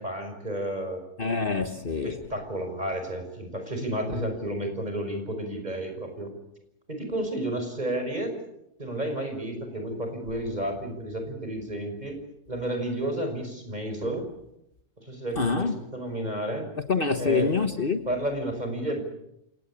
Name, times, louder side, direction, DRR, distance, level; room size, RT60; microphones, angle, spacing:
voice 1, 0.0-1.0 2.0-6.3 6.9-8.3 8.8-12.2 12.5-14.3 15.0-16.7 17.2-17.5 18.1-19.0, right 1 dB, 35° right, 5.7 m, -31 dB
voice 2, 1.2-2.1 15.4-15.7 16.9-18.0, left 4 dB, 45° left, 1.5 m, -25 dB
28.0 x 18.0 x 8.5 m
omnidirectional pair, 1.3 m